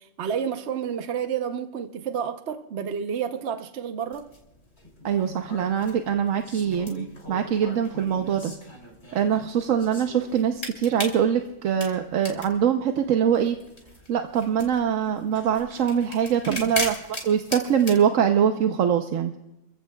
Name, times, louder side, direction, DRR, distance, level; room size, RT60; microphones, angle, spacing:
voice 1, 0.0-4.3 16.5-16.7, right 7 dB, 65° right, 1.1 m, -30 dB
sound 1, 4.1-18.0, left 2 dB, 55° left, 3.2 m, -39 dB
voice 2, 5.0-8.5 9.1-13.6 14.1-19.4, right 8 dB, 85° right, 1.2 m, -23 dB
28.0 x 15.5 x 2.3 m
omnidirectional pair, 1.3 m